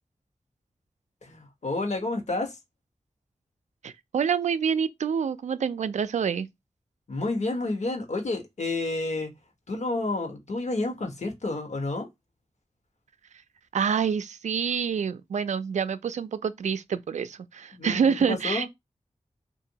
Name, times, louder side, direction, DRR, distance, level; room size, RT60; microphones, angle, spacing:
voice 1, 1.2-2.6 7.1-9.3 9.7-12.1 17.7-18.7, left 2 dB, 75° left, 1.1 m, -30 dB
voice 2, 3.8-6.5 13.7-18.7, right 7 dB, 85° right, 0.4 m, -27 dB
2.9 x 2.5 x 2.7 m
wide cardioid pair, 60°, 12 cm